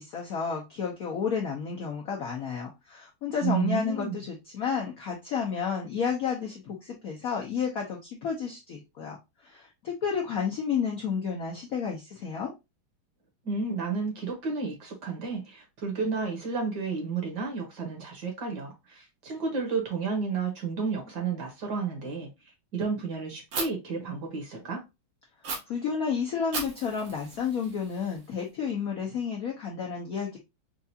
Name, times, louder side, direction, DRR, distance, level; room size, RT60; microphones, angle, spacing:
voice 1, 0.0-9.2 9.4-12.5 25.7-30.4, left 6 dB, 65° left, 0.8 m, -31 dB
voice 2, 3.4-4.2 13.4-22.3 22.7-24.8, right 5 dB, 60° right, 1.5 m, -31 dB
Fire, 23.5-23.6 25.4-25.6 26.5-28.5, right 3 dB, 75° right, 2.0 m, -36 dB
4.5 x 2.4 x 2.6 m
omnidirectional pair, 2.3 m